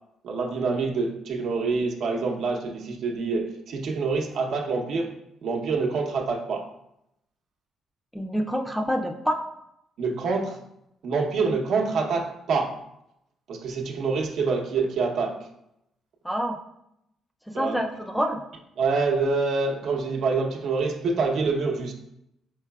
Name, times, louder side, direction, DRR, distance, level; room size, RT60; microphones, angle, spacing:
voice 1, 0.2-5.1 5.4-6.6 10.0-10.6 11.0-12.7 13.5-15.5 17.5-17.8 18.8-21.9, right 4 dB, 70° right, 1 dB, 0.7 m, -26 dB
voice 2, 8.1-9.4 16.2-16.6 17.6-18.4, equal, ahead, 4 dB, 0.4 m, -27 dB
4.7 x 3.9 x 2.3 m, 0.80 s
cardioid pair, 90°, 0 cm